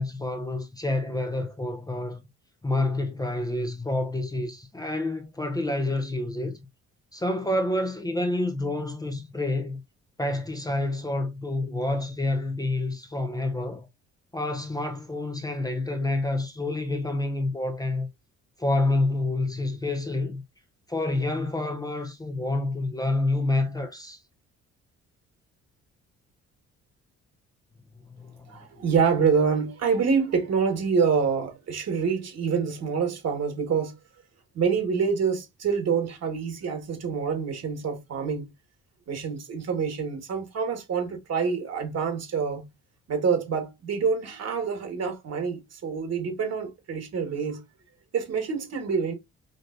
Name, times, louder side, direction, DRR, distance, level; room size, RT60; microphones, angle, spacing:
voice 1, 0.0-2.2 2.6-6.6 7.1-9.8 10.2-13.9 14.3-18.1 18.6-20.4 20.9-24.2 28.2-28.7, left 2 dB, 15° left, 0.6 m, -28 dB
voice 2, 28.5-33.9 34.6-38.5 39.1-42.6 43.1-47.6 48.1-49.1, right 6 dB, 55° right, 1.7 m, -26 dB
5.0 x 2.8 x 2.6 m
cardioid pair, 90°, 30 cm